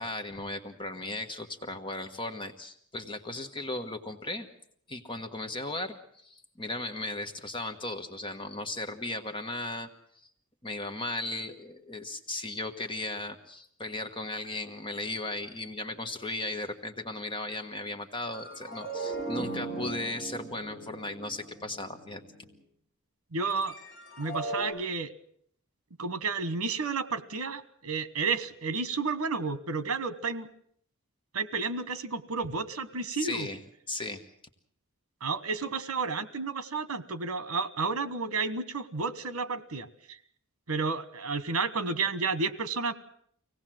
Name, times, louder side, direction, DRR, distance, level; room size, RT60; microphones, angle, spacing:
voice 1, 0.0-4.5 4.9-9.9 10.6-22.2 33.1-33.6 33.9-34.2, left 2 dB, 25° left, 7 dB, 1.3 m, -36 dB
sound 1, 18.2-22.5 23.5-24.6, right 2 dB, 40° left, 6.9 m, -38 dB
voice 2, 23.3-23.7 24.2-25.1 26.0-30.5 31.3-33.5 35.2-40.2 40.7-42.9, right 4 dB, 75° right, 14 dB, 1.3 m, -31 dB
24.5 x 18.0 x 7.6 m, 0.66 s
head